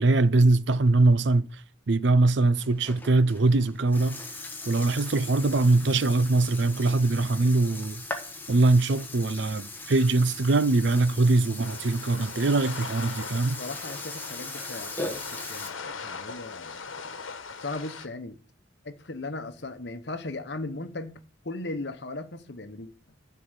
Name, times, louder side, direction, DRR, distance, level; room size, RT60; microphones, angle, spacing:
voice 1, 0.0-1.5 1.9-4.2 4.7-8.0 8.5-13.6, right 2 dB, 65° right, 0.6 m, -22 dB
Burping eructation, 2.5-15.7, left 2 dB, 10° left, 1.4 m, -40 dB
sound 1, 11.6-18.1, left 5 dB, 85° left, 1.2 m, -40 dB
voice 2, 13.6-17.1 17.6-18.4 18.8-21.2 21.4-22.9, left 2 dB, 60° left, 1.0 m, -37 dB
11.5 x 4.7 x 8.1 m
head